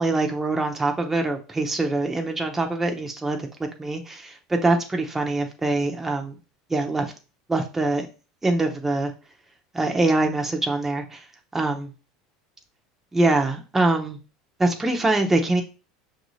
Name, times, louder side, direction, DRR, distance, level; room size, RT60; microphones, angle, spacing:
voice 1, 0.0-3.5 3.8-6.3 6.7-7.1 7.5-8.1 8.4-9.1 9.7-11.3 11.5-11.9 13.1-14.2 14.6-15.6, right 2 dB, 10° right, 3 dB, 0.8 m, -23 dB
5.9 x 2.6 x 3.1 m, 0.34 s
hypercardioid pair, 95°, 2 cm